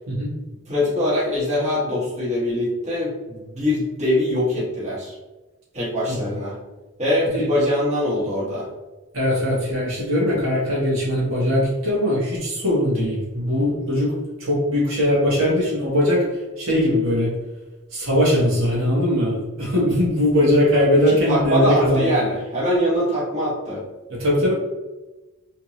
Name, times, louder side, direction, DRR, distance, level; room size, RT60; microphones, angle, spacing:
voice 1, 0.7-5.2 5.7-6.5 7.0-8.7 21.1-23.8, left 1 dB, 30° right, -8 dB, 1.3 m, -23 dB
voice 2, 9.1-17.3 17.9-22.1 24.1-24.5, left 1 dB, 65° right, -6 dB, 1.3 m, -20 dB
3.5 x 2.8 x 2.9 m, 1.1 s
head